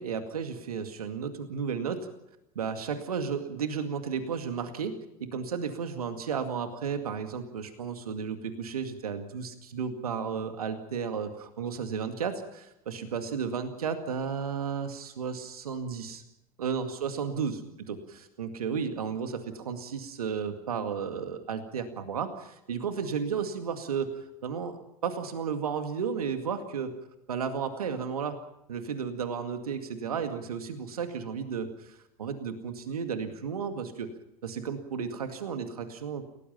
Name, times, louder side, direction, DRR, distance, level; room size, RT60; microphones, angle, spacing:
voice 1, 0.0-2.1 2.6-16.2 16.6-17.6 17.9-26.9 27.3-28.4 28.7-34.1 34.4-36.2, right 6 dB, 80° right, 7 dB, 2.1 m, -33 dB
29.0 x 18.5 x 5.7 m, 0.85 s
figure-of-eight pair, 75°, 19 cm